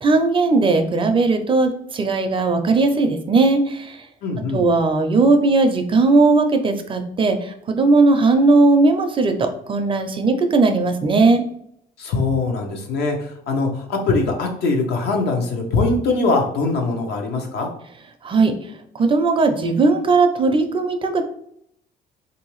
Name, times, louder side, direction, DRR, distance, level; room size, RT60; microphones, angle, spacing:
voice 1, 0.0-4.1 4.5-11.4 18.2-21.2, right 3 dB, 30° right, 6 dB, 0.5 m, -18 dB
voice 2, 4.2-4.6 12.0-17.7, left 3 dB, 70° left, 2 dB, 0.9 m, -22 dB
3.5 x 2.7 x 3.0 m, 0.71 s
cardioid pair, 110°, 17 cm